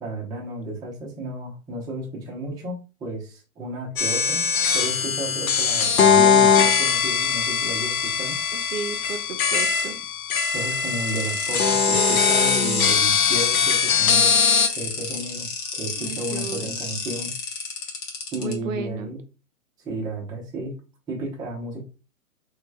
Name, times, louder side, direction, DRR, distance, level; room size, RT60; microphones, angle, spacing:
voice 1, 0.0-8.4 10.5-14.4 14.8-15.5 15.8-17.3 18.3-19.2 19.8-20.7 21.1-21.8, right 1 dB, 10° right, -3 dB, 0.7 m, -33 dB
sound 1, 4.0-14.7, left 6 dB, 75° left, 0.7 m, -21 dB
voice 2, 8.5-10.1 16.0-16.8 18.4-19.1, right 6 dB, 65° right, 8 dB, 0.6 m, -34 dB
sound 2, 11.1-18.5, left 4 dB, 55° left, 1.3 m, -31 dB
3.1 x 3.1 x 2.2 m, 0.32 s
hypercardioid pair, 135°, 42 cm